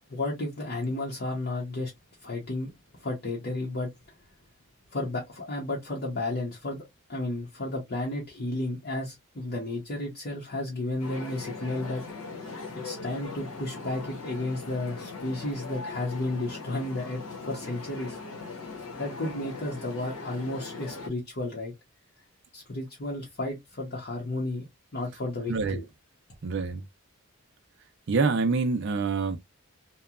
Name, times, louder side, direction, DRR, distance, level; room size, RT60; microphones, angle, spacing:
voice 1, 0.0-1.9 2.2-2.7 3.0-3.9 4.9-6.8 7.1-12.0 12.7-18.2 19.0-21.7 22.5-24.7 24.9-25.8, left 2 dB, 50° left, 0.8 m, -32 dB
sound 1, 11.0-21.1, left 4 dB, 70° left, 1.1 m, -40 dB
voice 2, 25.5-25.8 26.4-26.8 28.1-29.4, right 4 dB, 55° right, 0.4 m, -26 dB
2.8 x 2.2 x 2.3 m
head